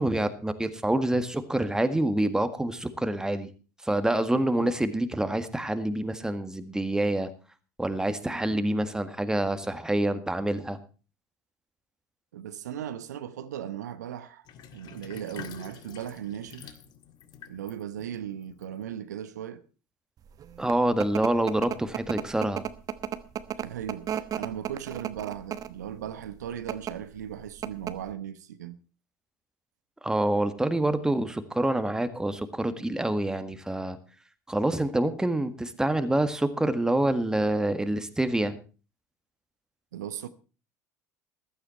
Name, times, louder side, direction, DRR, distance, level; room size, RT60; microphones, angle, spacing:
voice 1, 0.0-3.5 3.8-7.3 7.8-10.8 20.6-22.6 30.0-34.0 34.5-38.6, right 1 dB, 5° right, 1.7 m, -27 dB
voice 2, 4.4-4.7 12.3-14.5 14.7-16.8 17.5-19.6 23.6-28.8 39.9-40.3, right 10 dB, 80° right, 0.8 m, -37 dB
Sink (filling or washing), 14.5-19.2, left 9 dB, 50° left, 1.8 m, -48 dB
sound 1, 20.4-25.8 26.5-26.9 27.3-27.4 27.6-28.1, right 9 dB, 40° right, 1.2 m, -33 dB
15.5 x 12.0 x 4.4 m
hypercardioid pair, 70°, 9 cm